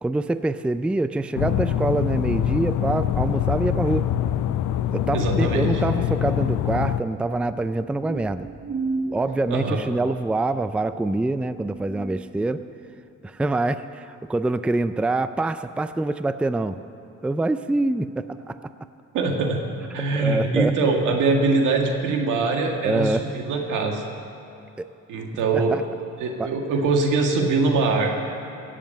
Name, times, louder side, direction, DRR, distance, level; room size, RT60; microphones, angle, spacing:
voice 1, 0.0-4.1 4.9-8.5 9.1-12.6 13.2-16.8 17.2-18.6 20.0-20.9 22.8-23.2 24.8-24.9 25.5-25.8 26.4-26.5, right 2 dB, 5° right, 12 dB, 0.4 m, -25 dB
sound 1, 1.3-7.0, left 11 dB, 75° left, 0.6 m, -24 dB
voice 2, 5.1-5.7 9.5-9.8 19.1-19.6 19.9-24.1 25.1-25.8 26.2-28.1, right 3 dB, 85° right, 2 dB, 2.0 m, -22 dB
sound 2, 7.2-13.0, right 3 dB, 45° right, 1.5 m, -35 dB
17.5 x 7.5 x 7.9 m, 2.8 s
cardioid pair, 90°, 30 cm